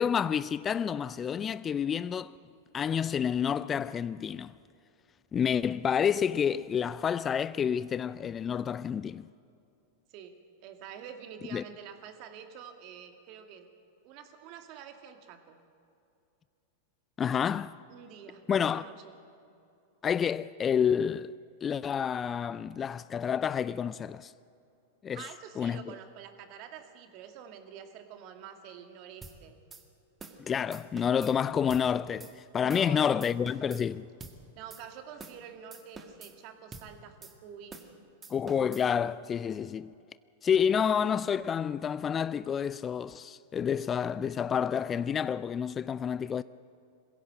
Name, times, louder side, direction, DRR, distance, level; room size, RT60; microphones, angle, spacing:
voice 1, 0.0-2.3 2.7-4.5 5.3-9.2 11.5-11.6 17.2-17.8 18.5-18.8 20.0-21.3 21.6-24.3 25.0-25.3 25.6-25.8 30.4-34.1 38.3-39.9 40.4-46.4, left 7 dB, 25° left, 0.4 m, -29 dB
voice 2, 10.1-13.7 14.0-15.6 17.9-19.2 25.1-29.6 32.6-33.4 34.6-37.8, right 8 dB, 50° right, 2.2 m, -47 dB
sound 1, 29.2-29.4 29.7-29.8 30.2-30.4 30.7-31.3 31.7-31.9 32.2-32.3 32.7-32.9 33.2-33.8 34.2-34.4 34.7-34.8 35.2-35.4 35.7-36.3 36.7-36.9 37.2-37.3 37.7-37.9 38.2-38.8, right 4 dB, 20° right, 2.0 m, -47 dB
21.5 x 16.5 x 7.8 m
hypercardioid pair, 100°, 0 cm